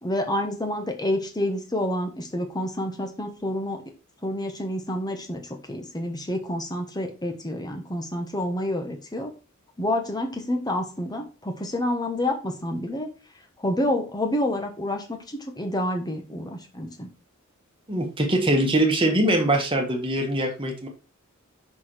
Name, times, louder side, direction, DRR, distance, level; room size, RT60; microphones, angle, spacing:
voice 1, 0.0-3.8 4.2-5.4 5.7-9.3 9.8-13.1 13.6-17.1, left 1 dB, 20° left, 4 dB, 1.2 m, -28 dB
voice 2, 17.9-20.9, right 1 dB, 25° right, 2 dB, 1.6 m, -22 dB
6.1 x 4.8 x 4.6 m, 0.32 s
head